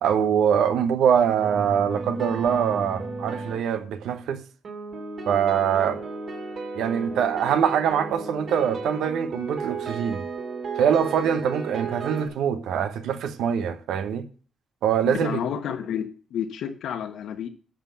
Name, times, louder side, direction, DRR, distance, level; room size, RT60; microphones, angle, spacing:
voice 1, 0.0-4.4 5.3-6.0 6.8-10.2 10.8-14.3 14.8-15.4, right 8 dB, 80° right, 0.9 m, -23 dB
sound 1, 1.4-3.7 4.6-12.3, right 4 dB, 55° right, 2.7 m, -34 dB
voice 2, 15.2-17.5, left 8 dB, 75° left, 1.3 m, -30 dB
10.5 x 5.7 x 5.6 m
cardioid pair, 90°, 0 cm